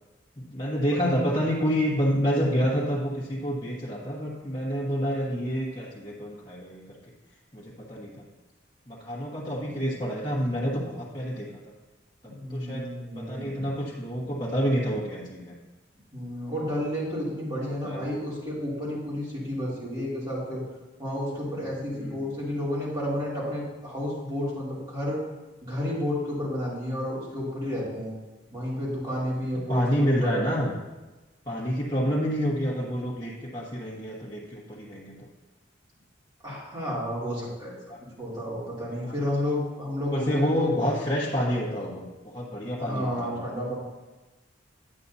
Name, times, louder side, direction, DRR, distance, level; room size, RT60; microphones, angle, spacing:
voice 1, 0.4-7.0 7.5-8.2 8.9-11.5 12.5-15.5 17.7-18.1 21.9-22.3 29.5-30.7 31.5-35.3 37.9-38.0 39.0-39.1 40.1-43.4, equal, 25° left, -7 dB, 1.2 m, -28 dB
voice 2, 2.2-2.6 9.5-10.0 12.2-13.7 16.1-20.6 21.0-25.2 25.6-28.1 28.5-30.5 36.4-37.7 38.2-40.7 42.8-43.7, left 1 dB, 25° right, -8 dB, 2.9 m, -31 dB
9.9 x 8.5 x 2.7 m, 1.1 s
head